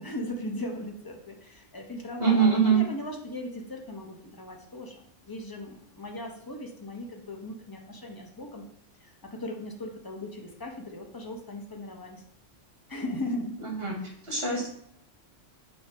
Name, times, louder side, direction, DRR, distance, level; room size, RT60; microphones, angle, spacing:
voice 1, 0.0-8.6 9.0-12.2 12.9-13.5 13.9-14.0, left 1 dB, 20° left, 1 dB, 0.8 m, -38 dB
voice 2, 2.2-2.8 13.6-13.9 14.2-14.7, right 6 dB, 55° right, -2 dB, 2.0 m, -23 dB
6.5 x 2.8 x 5.2 m, 0.68 s
omnidirectional pair, 1.2 m